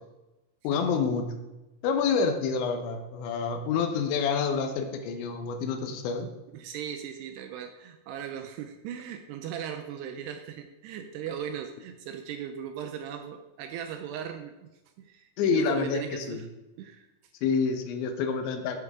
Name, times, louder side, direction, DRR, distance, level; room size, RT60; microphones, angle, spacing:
voice 1, 0.6-1.3 1.8-6.3 15.4-16.4 17.4-18.8, left 5 dB, 80° left, 5 dB, 3.4 m, -28 dB
voice 2, 6.5-14.7 15.0-16.5 16.8-17.1, right 9 dB, 80° right, 6 dB, 2.6 m, -38 dB
14.0 x 7.9 x 3.7 m, 1.0 s
omnidirectional pair, 5.2 m